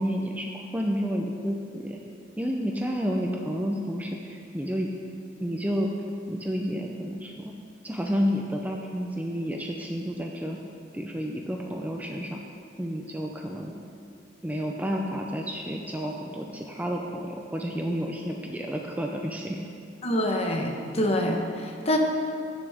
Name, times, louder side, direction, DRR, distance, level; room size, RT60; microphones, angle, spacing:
voice 1, 0.0-2.0 2.4-4.9 5.4-5.9 6.3-7.6 7.8-10.6 10.9-12.4 12.8-13.7 14.4-19.6, equal, 10° right, 0 dB, 0.5 m, -30 dB
voice 2, 20.0-22.0, left 1 dB, 35° left, 2 dB, 1.0 m, -26 dB
16.5 x 7.0 x 3.5 m, 2.5 s
head